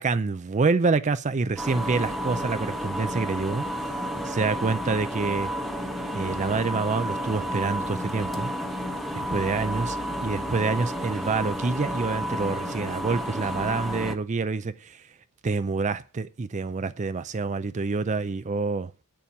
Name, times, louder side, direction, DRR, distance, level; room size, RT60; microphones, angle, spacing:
voice 1, 0.0-3.6 4.2-5.5 6.1-8.5 9.1-10.0 10.2-15.0 15.4-19.0, right 4 dB, 35° right, 0.5 m, -27 dB
sound 1, 1.6-14.2, equal, ahead, 1.0 m, -31 dB
8.9 x 6.9 x 7.1 m
head